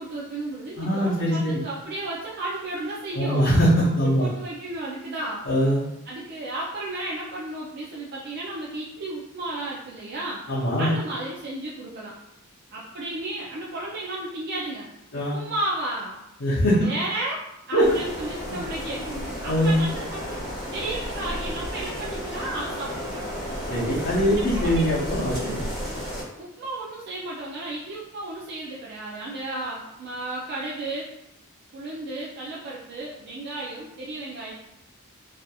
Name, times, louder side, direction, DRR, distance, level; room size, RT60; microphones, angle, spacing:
voice 1, 0.0-3.5 4.0-5.4 6.1-10.4 10.8-12.1 12.7-16.2 16.8-20.4 20.7-23.2 24.3-24.9 26.2-31.1 31.7-34.5, right 2 dB, 50° right, -5 dB, 0.4 m, -33 dB
voice 2, 0.8-1.5 3.2-4.3 5.5-5.8 10.5-10.9 15.1-15.4 16.4-16.9 17.7-17.9 19.5-19.8 23.7-25.6, equal, 55° left, -10 dB, 0.6 m, -22 dB
sound 1, 17.8-26.2, equal, ahead, 1.4 m, -32 dB
2.7 x 2.4 x 2.3 m, 0.85 s
head